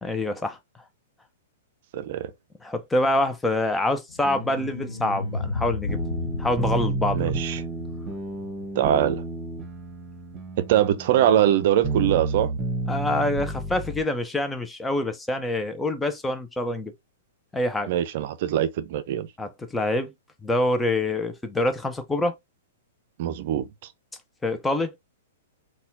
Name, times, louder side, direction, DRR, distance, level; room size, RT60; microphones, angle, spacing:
voice 1, 0.0-0.6 2.6-6.0 6.4-7.3 12.9-16.9 17.5-17.9 19.4-20.1 20.4-22.3 24.4-24.9, left 1 dB, 10° left, 0.7 m, -26 dB
voice 2, 1.9-2.3 7.1-7.6 8.8-9.2 10.7-12.5 17.9-19.3 23.2-23.6, right 11 dB, 55° right, 0.5 m, -22 dB
sound 1, 4.1-9.2, left 4 dB, 80° left, 0.5 m, -33 dB
sound 2, 4.2-14.0, right 3 dB, 25° right, 1.2 m, -32 dB
4.1 x 2.4 x 2.6 m
hypercardioid pair, 115°, 0 cm